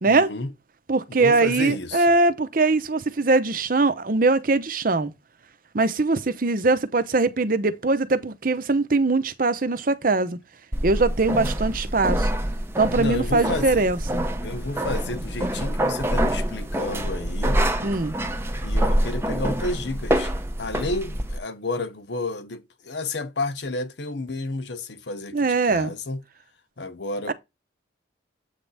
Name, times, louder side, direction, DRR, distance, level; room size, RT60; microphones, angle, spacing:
voice 1, 0.0-0.5 1.1-2.1 12.9-13.9 14.4-17.6 18.6-20.3 20.6-26.2 26.8-27.3, left 2 dB, 70° left, 0.9 m, -31 dB
voice 2, 0.9-5.1 5.7-10.4 10.8-12.3 12.8-14.2 17.8-18.1 25.3-25.9 27.3-27.4, right 3 dB, 50° right, 0.8 m, -21 dB
sound 1, 10.7-21.4, right 1 dB, 15° right, 0.7 m, -26 dB
8.2 x 3.4 x 4.0 m
head